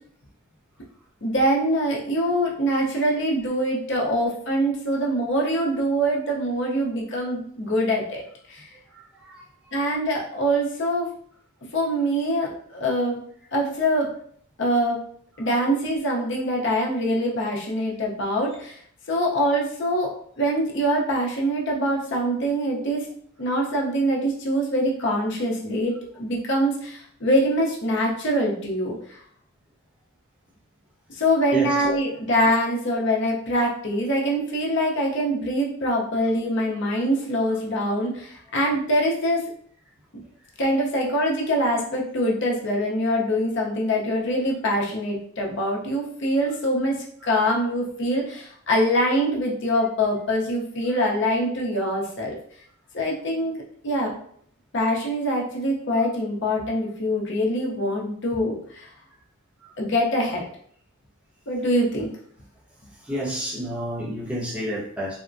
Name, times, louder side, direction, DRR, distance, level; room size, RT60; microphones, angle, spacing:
voice 1, 1.2-8.7 9.7-11.1 11.7-13.2 13.5-14.1 14.6-15.0 15.4-18.8 19.1-23.1 23.4-25.9 26.2-29.2 31.1-39.5 40.6-47.0 47.2-52.4 52.9-53.5 53.8-54.1 54.7-58.9 59.8-60.5 61.5-62.1, equal, 55° left, -2 dB, 0.7 m, -24 dB
voice 2, 8.9-9.4 15.4-15.6 31.5-31.7 32.4-32.5 37.5-37.6 47.2-47.3 56.0-56.1 63.0-65.2, equal, 5° right, -8 dB, 0.8 m, -31 dB
3.5 x 2.1 x 2.5 m, 0.62 s
head